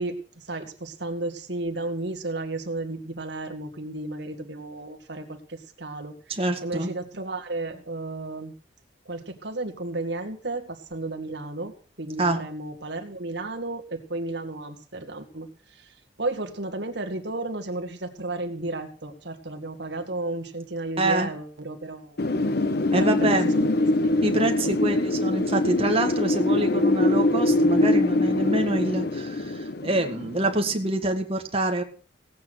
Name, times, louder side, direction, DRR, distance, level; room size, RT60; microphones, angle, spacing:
voice 1, 0.0-8.5 9.1-11.7 12.0-22.2 22.9-23.7 24.0-24.5, right 2 dB, 65° right, 4 dB, 2.0 m, -33 dB
voice 2, 6.3-6.9 12.2-12.4 21.0-21.3 22.9-23.5 24.2-31.8, right 1 dB, 30° right, 4 dB, 1.9 m, -26 dB
Wind, 22.2-30.9, left 2 dB, 60° left, 0.9 m, -23 dB
17.5 x 8.5 x 6.3 m, 0.39 s
head